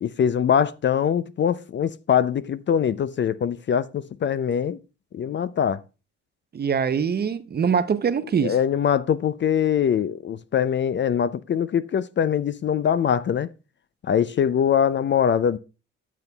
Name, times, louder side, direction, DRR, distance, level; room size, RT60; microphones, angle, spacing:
voice 1, 0.0-4.8 5.1-5.8 8.4-13.5 14.0-15.6, left 8 dB, 40° left, 0.4 m, -23 dB
voice 2, 6.5-8.5, right 6 dB, 35° right, 0.6 m, -23 dB
12.0 x 7.2 x 2.2 m
cardioid pair, 90°, 30 cm